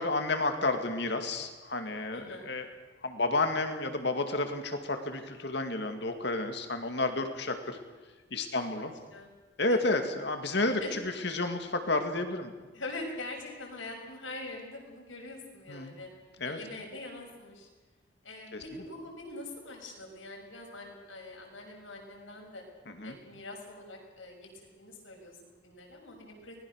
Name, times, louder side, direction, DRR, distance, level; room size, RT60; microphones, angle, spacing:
voice 1, 0.0-2.7 3.0-7.8 8.3-8.9 9.6-12.5 15.7-15.9 16.4-16.6 18.5-18.6 22.9-23.2, left 2 dB, 55° left, 6 dB, 2.3 m, -31 dB
voice 2, 2.1-2.5 8.5-9.3 9.7-10.0 10.8-10.9 12.7-16.1 16.4-17.7 18.2-22.6 23.0-26.5, left 2 dB, 75° left, 0 dB, 6.2 m, -44 dB
24.5 x 20.0 x 6.5 m, 1.3 s
head